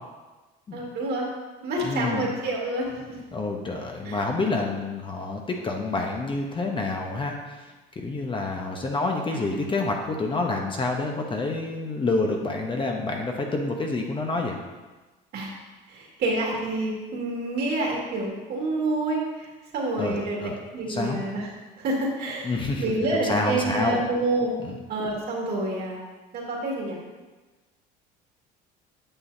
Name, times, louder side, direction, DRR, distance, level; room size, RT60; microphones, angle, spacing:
voice 1, 0.7-1.3 1.6-2.9 4.1-4.2 9.3-9.7 15.3-15.5 15.9-19.5 19.7-20.4 20.7-21.5 21.8-22.5 22.8-24.5 24.9-26.0 26.3-27.0, right 2 dB, 55° right, -2 dB, 2.1 m, -28 dB
voice 2, 1.8-2.3 3.3-7.4 8.0-14.6 20.0-20.6 20.9-21.2 22.4-22.8 23.1-24.0 24.6-24.8, left 3 dB, 25° left, 1 dB, 1.0 m, -28 dB
9.0 x 6.2 x 2.8 m, 1.2 s
supercardioid pair, 105°, 20 cm